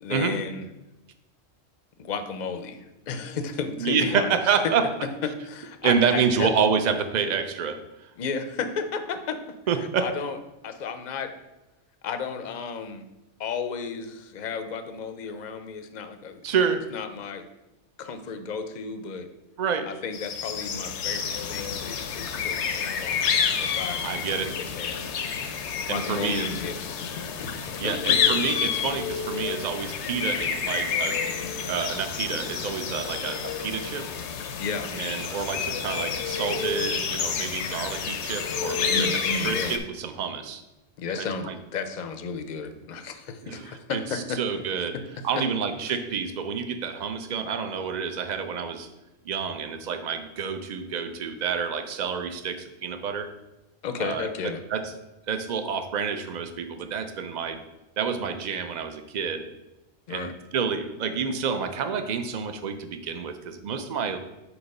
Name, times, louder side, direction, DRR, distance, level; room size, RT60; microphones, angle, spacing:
voice 1, 0.0-0.6 2.0-4.4 5.4-6.6 8.2-9.4 10.0-10.4 10.6-11.3 12.0-13.0 13.4-16.5 16.9-17.5 18.0-19.3 19.8-25.2 25.9-27.1 27.4-28.3 34.6-34.9 38.9-39.8 41.0-44.4 44.7-45.0 45.4-45.8 53.8-54.6 60.1-60.3, left 5 dB, 50° left, 8 dB, 0.6 m, -33 dB
voice 2, 3.8-4.9 5.8-8.1 9.7-10.1 16.4-16.9 19.6-19.9 24.0-24.5 25.9-26.5 27.8-31.2 31.6-34.1 34.9-40.6 41.2-41.5 43.4-45.0 45.2-48.9 49.2-53.3 54.0-54.3 54.7-54.9 55.3-57.6 58.0-59.5 60.1-64.2, right 6 dB, 50° right, 8 dB, 0.6 m, -28 dB
sound 1, 20.1-39.8, left 7 dB, 80° left, 0.9 m, -29 dB
8.0 x 2.9 x 5.3 m, 1.0 s
omnidirectional pair, 1.2 m